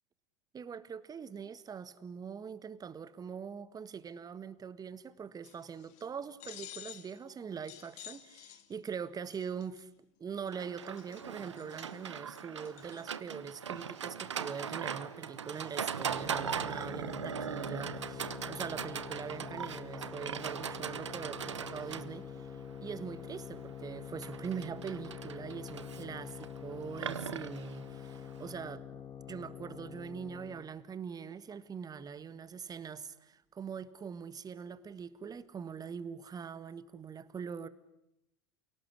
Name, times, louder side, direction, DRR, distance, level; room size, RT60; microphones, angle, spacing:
voice 1, 0.5-9.9 10.2-22.5 22.8-28.8 29.3-37.7, right 6 dB, 25° right, 1.6 m, -43 dB
sound 1, 5.4-6.0 6.4-7.2 7.6-8.9 9.3-9.8 10.5-10.6 10.8-13.1, left 14 dB, 55° left, 2.2 m, -51 dB
Livestock farm animals working animals, 10.5-28.6, right 7 dB, 85° right, 1.1 m, -40 dB
sound 2, 16.1-30.7, left 8 dB, 25° left, 2.4 m, -46 dB
29.0 x 18.0 x 10.0 m
hypercardioid pair, 85°, 15 cm